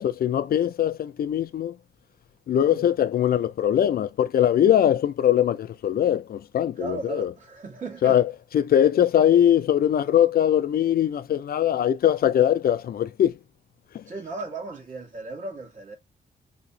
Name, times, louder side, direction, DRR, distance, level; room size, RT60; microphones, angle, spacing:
voice 1, 0.0-1.7 2.5-7.3 8.0-13.4 13.9-14.0, left 10 dB, 60° left, 0.5 m, -21 dB
voice 2, 6.8-8.2 11.7-11.8 14.0-16.0, right 3 dB, 40° right, 1.4 m, -36 dB
3.5 x 2.9 x 2.6 m
cardioid pair, 95°, 18 cm